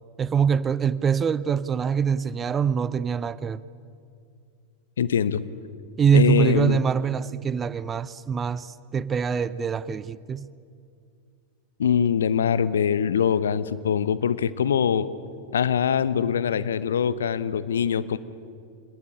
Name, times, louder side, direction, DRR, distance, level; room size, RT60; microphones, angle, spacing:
voice 1, 0.2-3.6 6.0-10.5, right 7 dB, 20° right, 0.6 m, -24 dB
voice 2, 5.0-5.4 6.1-6.8 11.8-15.1 15.5-18.2, left 8 dB, 65° left, 0.9 m, -23 dB
25.5 x 19.5 x 10.0 m
figure-of-eight pair, 90°, 0 cm